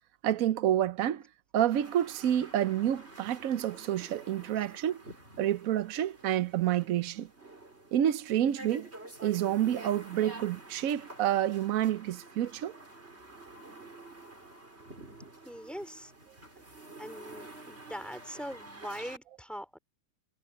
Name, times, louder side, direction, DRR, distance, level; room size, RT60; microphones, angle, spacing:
voice 1, 0.2-1.2 1.5-5.0 5.4-7.3 7.9-8.9 9.2-12.7, right 11 dB, 70° right, 0.8 m, -28 dB
sound 1, 1.7-19.2, right 2 dB, 30° right, 5.1 m, -49 dB
voice 2, 15.5-16.1 17.0-19.8, equal, ahead, 4.0 m, -42 dB
omnidirectional pair, 2.2 m